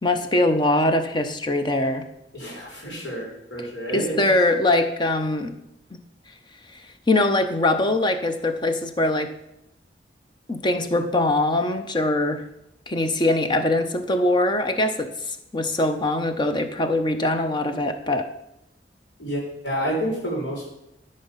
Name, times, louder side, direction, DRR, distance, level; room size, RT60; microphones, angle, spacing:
voice 1, 0.0-2.0 3.9-5.5 5.9-6.0 7.1-9.3 10.5-12.4 12.9-18.3, left 2 dB, 25° left, 8 dB, 0.8 m, -22 dB
voice 2, 2.3-4.2 19.2-20.7, equal, 90° left, -3 dB, 4.1 m, -29 dB
13.0 x 5.3 x 5.6 m, 0.83 s
head